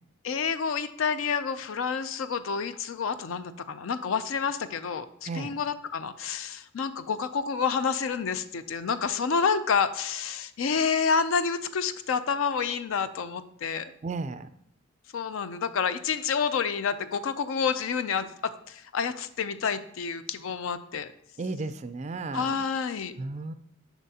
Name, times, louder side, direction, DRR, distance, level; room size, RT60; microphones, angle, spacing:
voice 1, 0.2-13.9 15.1-21.1 22.3-23.1, left 6 dB, 70° left, 13 dB, 0.4 m, -29 dB
voice 2, 5.3-5.6 14.0-14.5 21.4-22.7 23.2-23.5, right 3 dB, 30° right, 11 dB, 0.3 m, -34 dB
7.3 x 6.0 x 2.8 m, 0.73 s
head